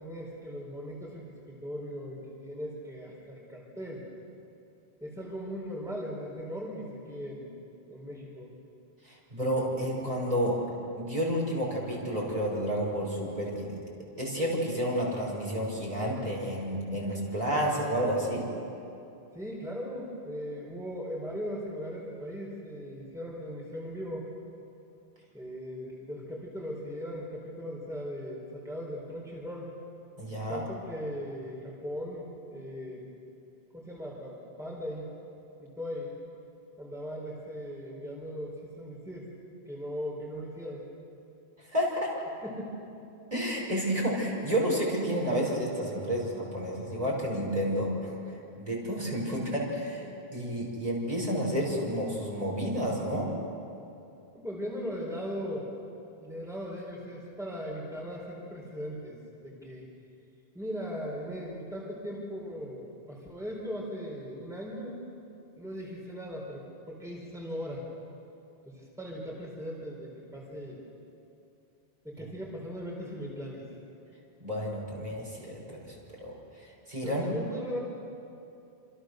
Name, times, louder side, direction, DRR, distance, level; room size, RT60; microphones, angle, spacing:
voice 1, 0.0-4.1 5.0-7.5 7.9-8.5 19.3-24.3 25.3-29.7 30.5-33.1 33.7-35.1 35.6-36.1 36.8-39.3 39.7-40.8 42.4-42.7 54.3-55.7 56.2-59.2 59.4-59.9 60.5-65.0 65.6-67.8 68.6-70.8 72.0-73.6 77.0-77.8, equal, 5° right, -3 dB, 4.6 m, -38 dB
voice 2, 9.0-10.6 10.9-13.7 14.2-18.4 30.2-30.6 41.7-42.1 43.3-48.1 48.6-50.1 50.3-53.3 74.4-76.3 76.9-77.2, equal, 40° right, -4 dB, 6.1 m, -30 dB
28.0 x 27.5 x 6.7 m, 2.7 s
omnidirectional pair, 1.0 m